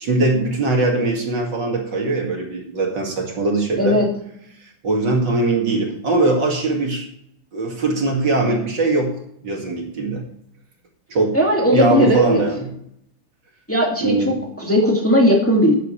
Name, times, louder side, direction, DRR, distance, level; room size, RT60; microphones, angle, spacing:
voice 1, 0.0-4.0 4.8-7.0 7.5-9.1 9.4-10.2 11.1-12.7 14.0-14.3, right 2 dB, 60° right, 1 dB, 2.9 m, -21 dB
voice 2, 3.8-4.1 11.3-12.4 13.7-15.7, equal, 5° left, -2 dB, 2.2 m, -17 dB
13.5 x 10.5 x 3.3 m, 0.71 s
omnidirectional pair, 2.2 m